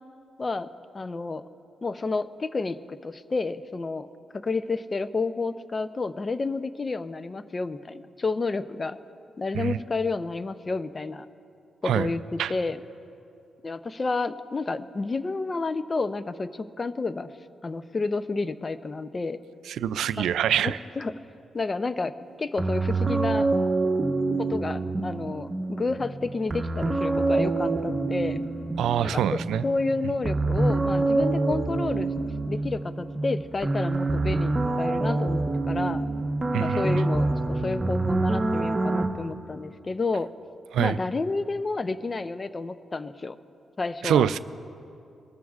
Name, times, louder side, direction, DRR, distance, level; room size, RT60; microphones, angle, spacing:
voice 1, 0.4-1.4 1.8-4.1 4.3-9.0 9.4-11.3 11.8-12.8 13.6-17.3 17.6-19.4 20.2-20.3 20.6-21.1 21.5-23.5 24.4-28.4 29.0-32.1 32.5-36.0 36.5-40.3 40.8-43.4 43.8-44.3, left 3 dB, 35° left, 13 dB, 0.5 m, -30 dB
voice 2, 19.7-20.8 28.8-29.6 30.0-30.1 36.5-37.0 40.7-41.0 44.0-44.4, right 9 dB, 85° right, 14 dB, 0.3 m, -25 dB
sound 1, 22.6-39.1, right 2 dB, 30° right, 1.0 m, -26 dB
21.5 x 13.5 x 2.4 m, 2.6 s
cardioid pair, 75°, 0 cm